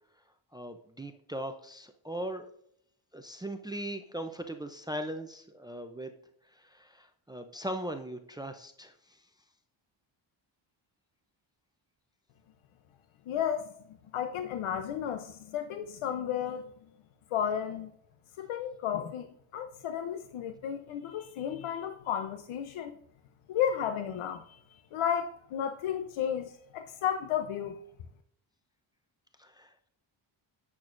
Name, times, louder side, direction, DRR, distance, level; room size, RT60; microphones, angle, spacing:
voice 1, 0.5-2.5 3.1-6.1 6.4-9.2 29.4-29.9, right 1 dB, 10° right, 0.5 m, -39 dB
voice 2, 13.3-13.7 14.1-16.7 17.3-17.9 18.4-19.3 19.5-23.0 23.5-24.6 24.9-27.8, left 9 dB, 85° left, 0.8 m, -33 dB
10.5 x 8.7 x 2.6 m
wide cardioid pair, 155°, 47 cm